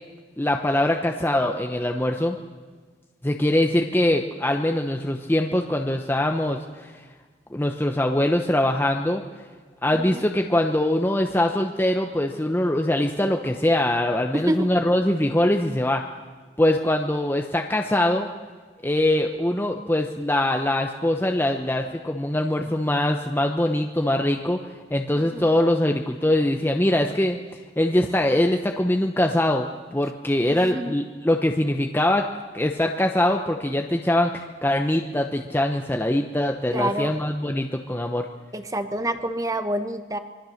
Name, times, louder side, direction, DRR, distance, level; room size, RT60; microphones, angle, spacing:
voice 1, 0.4-2.4 3.2-6.9 7.5-9.2 9.8-16.0 16.6-18.3 18.8-24.6 24.9-27.4 27.8-32.2 32.5-38.3, left 1 dB, 10° left, 3 dB, 0.9 m, -23 dB
voice 2, 14.3-14.7 25.1-25.5 30.5-30.9 36.7-37.1 38.5-40.2, right 1 dB, 20° right, 9 dB, 1.2 m, -27 dB
25.5 x 21.5 x 6.6 m, 1.5 s
head